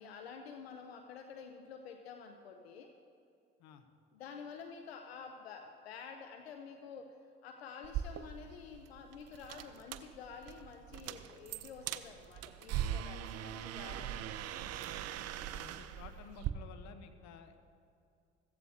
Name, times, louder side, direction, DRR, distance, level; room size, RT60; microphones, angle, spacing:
voice 1, 0.0-2.9 4.1-7.2 7.4-14.3, left 6 dB, 90° left, 5 dB, 0.6 m, -49 dB
sound 1, 7.8-16.5, right 11 dB, 55° right, 0.7 m, -41 dB
voice 2, 15.5-17.6, left 7 dB, 65° left, 8 dB, 1.0 m, -54 dB
15.5 x 15.0 x 2.8 m, 2.5 s
hypercardioid pair, 55°, 30 cm